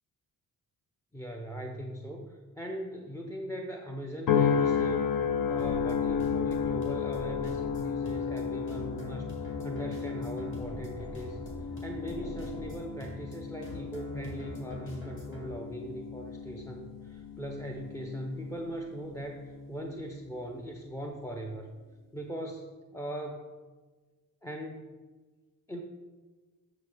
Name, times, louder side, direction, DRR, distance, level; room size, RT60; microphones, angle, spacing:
voice 1, 1.1-5.1 5.5-21.7 22.1-23.5 24.4-24.9 25.7-25.8, equal, 10° left, 1 dB, 0.5 m, -40 dB
sound 1, 4.3-18.7 19.3-19.7, left 7 dB, 60° left, 0.6 m, -33 dB
sound 2, 5.6-15.5, equal, 35° left, 2.0 m, -43 dB
8.4 x 6.7 x 3.4 m, 1.4 s
wide cardioid pair, 135°, 37 cm